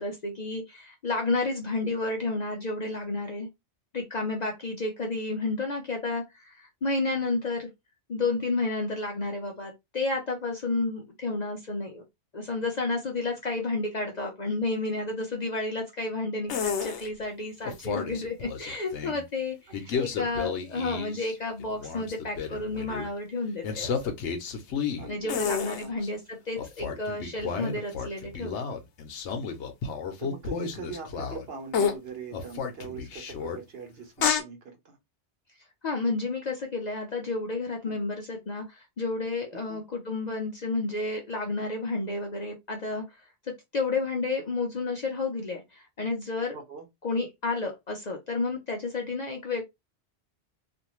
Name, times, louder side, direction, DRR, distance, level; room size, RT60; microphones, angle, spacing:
voice 1, 0.0-3.5 3.9-7.7 8.1-12.0 12.3-23.9 25.1-28.5 35.8-46.6 47.0-49.6, left 3 dB, 50° left, 0.6 m, -31 dB
sound 1, 16.5-17.0 17.6-19.2 19.7-21.3 21.6-23.1 23.6-26.1 26.6-31.5 31.7-32.0 32.3-33.6 34.2-34.4, left 6 dB, 75° left, 1.0 m, -31 dB
voice 2, 25.0-25.5 25.8-26.0 30.2-35.0 37.9-38.0 39.5-39.8 46.5-46.8, right 5 dB, 60° right, 1.0 m, -42 dB
2.6 x 2.5 x 2.9 m
omnidirectional pair, 1.2 m